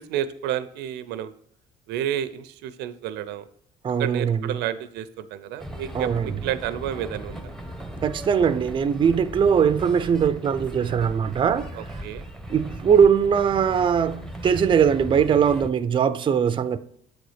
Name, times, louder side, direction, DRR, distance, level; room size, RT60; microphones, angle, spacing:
voice 1, 0.0-1.3 1.9-3.5 4.0-7.5 11.8-12.3, right 10 dB, 85° right, 0.5 m, -30 dB
voice 2, 3.8-4.6 5.9-6.3 8.0-11.9 12.5-16.8, right 7 dB, 30° right, 0.4 m, -21 dB
sound 1, 5.6-15.7, right 1 dB, 5° left, 0.9 m, -37 dB
8.0 x 4.0 x 4.9 m
cardioid pair, 110°, 17 cm